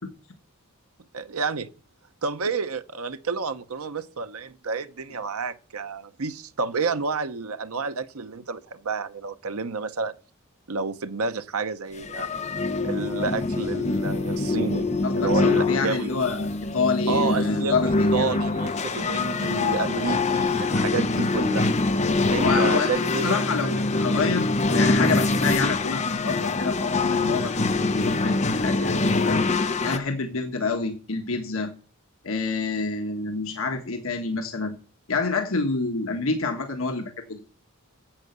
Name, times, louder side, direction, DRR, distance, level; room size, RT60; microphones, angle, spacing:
voice 1, 1.1-1.7 2.2-10.1 10.7-12.3 12.8-16.1 17.1-21.8 22.3-23.3, right 4 dB, 90° right, 0.8 m, -30 dB
sound 1, 12.0-30.0, left 3 dB, 30° left, 0.9 m, -24 dB
voice 2, 15.0-18.3 21.0-21.2 22.4-27.6 27.9-29.4 29.8-31.7 32.2-34.7 35.1-37.4, left 4 dB, 70° left, 1.5 m, -28 dB
10.0 x 7.8 x 8.1 m
head